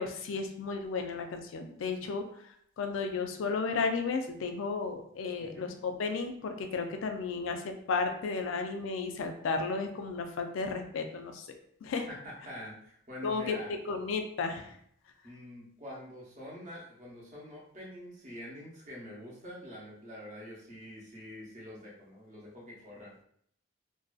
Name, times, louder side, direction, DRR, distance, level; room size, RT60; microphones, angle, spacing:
voice 1, 0.0-2.2 2.8-11.5 11.8-12.1 13.2-13.6 13.9-14.7, left 4 dB, 70° left, 5 dB, 0.3 m, -33 dB
voice 2, 5.4-5.7 12.1-13.7 15.2-23.2, left 1 dB, 35° right, -5 dB, 0.7 m, -46 dB
2.5 x 2.2 x 2.3 m, 0.67 s
head